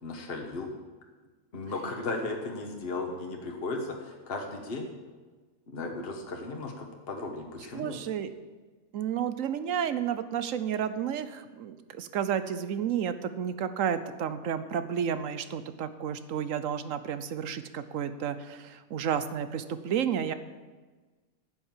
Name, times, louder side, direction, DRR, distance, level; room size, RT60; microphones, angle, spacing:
voice 1, 0.0-0.7 1.5-4.9 5.7-8.0, left 3 dB, 45° left, 2 dB, 1.4 m, -36 dB
voice 2, 7.7-8.3 8.9-20.3, right 8 dB, 70° right, 12 dB, 1.1 m, -31 dB
10.5 x 8.0 x 7.4 m, 1.3 s
omnidirectional pair, 1.5 m